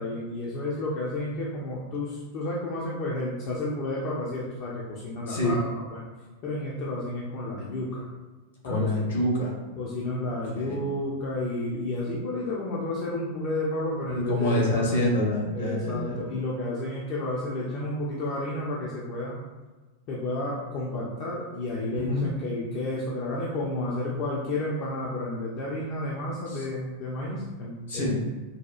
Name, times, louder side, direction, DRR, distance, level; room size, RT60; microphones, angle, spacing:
voice 1, 0.0-6.1 6.4-8.0 8.6-8.9 9.8-14.6 15.5-19.4 20.1-28.3, left 1 dB, 40° left, -5 dB, 0.5 m, -31 dB
voice 2, 8.6-9.5 10.5-10.8 14.1-16.3 21.9-22.2 26.5-26.6 27.9-28.2, left 1 dB, 65° left, -3 dB, 1.1 m, -26 dB
4.1 x 2.3 x 2.4 m, 1.3 s
figure-of-eight pair, 90°, 0 cm